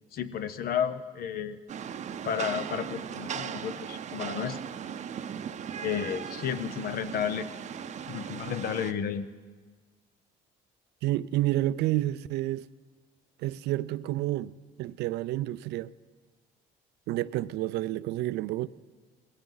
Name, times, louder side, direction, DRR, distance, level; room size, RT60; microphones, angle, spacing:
voice 1, 0.1-1.6 2.2-4.6 5.8-7.5 8.1-9.3, left 8 dB, 60° left, 0.8 m, -32 dB
Rain, 1.7-8.9, right 8 dB, 45° right, 0.7 m, -38 dB
voice 2, 11.0-12.7 13.4-15.9 17.1-18.7, right 15 dB, 80° right, 0.4 m, -29 dB
20.5 x 16.5 x 3.9 m
cardioid pair, 110°, 17 cm